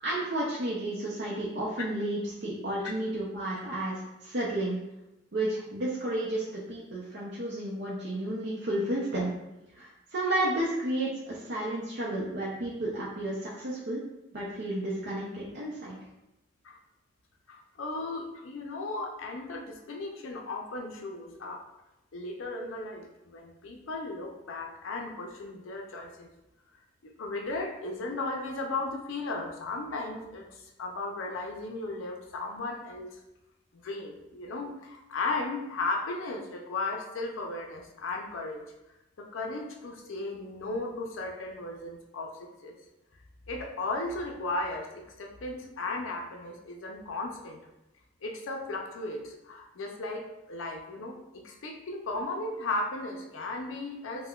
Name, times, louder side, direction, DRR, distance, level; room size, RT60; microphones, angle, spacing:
voice 1, 0.0-4.8 5.3-9.3 9.7-14.0 14.3-16.0, right 1 dB, 60° right, -6 dB, 0.5 m, -32 dB
voice 2, 17.5-21.6 22.1-26.3 27.0-33.2 33.7-38.6 39.2-42.8 43.5-47.7 48.2-54.3, left 2 dB, 80° left, 2 dB, 0.5 m, -36 dB
5.5 x 2.1 x 2.3 m, 0.93 s
head